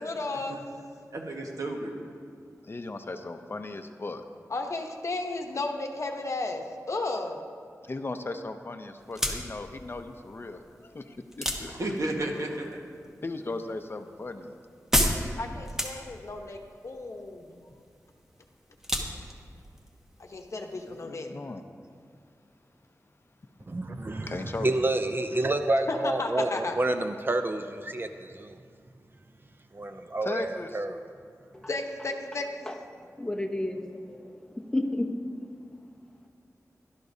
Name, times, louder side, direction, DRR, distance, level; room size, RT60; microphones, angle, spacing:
voice 1, 0.0-0.6 4.5-7.4 15.4-16.6 16.8-17.6 20.3-21.3 25.9-26.7 31.7-32.7, left 2 dB, 55° left, 3 dB, 0.9 m, -33 dB
voice 2, 1.1-1.9 11.6-12.8, right 1 dB, 65° right, 1 dB, 1.5 m, -32 dB
voice 3, 2.7-4.2 7.8-11.7 13.2-14.6 20.7-21.6 24.3-24.7 30.2-30.9, left 2 dB, 40° left, 7 dB, 0.6 m, -37 dB
sound 1, 9.0-21.0, equal, 10° right, 1.2 m, -34 dB
voice 4, 23.7-28.6 29.7-31.0, right 2 dB, 35° right, 7 dB, 0.5 m, -29 dB
voice 5, 32.6-35.5 35.8-35.9, left 1 dB, 10° left, 2 dB, 0.9 m, -33 dB
16.5 x 12.0 x 2.7 m, 2.2 s
wide cardioid pair, 90°, 6 cm